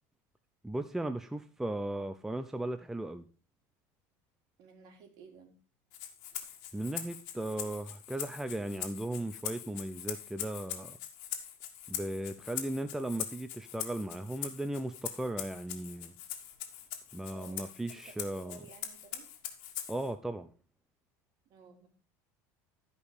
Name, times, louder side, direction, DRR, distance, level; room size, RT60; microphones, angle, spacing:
voice 1, 0.6-3.3 6.7-11.0 11.9-16.1 17.1-18.6 19.9-20.5, right 1 dB, 5° right, 0.6 m, -37 dB
voice 2, 4.6-5.5 17.3-19.3 21.4-21.9, right 5 dB, 55° right, 3.0 m, -54 dB
Rattle (instrument), 5.9-20.1, left 11 dB, 70° left, 1.7 m, -42 dB
12.5 x 5.2 x 4.8 m
supercardioid pair, 125°, 8 cm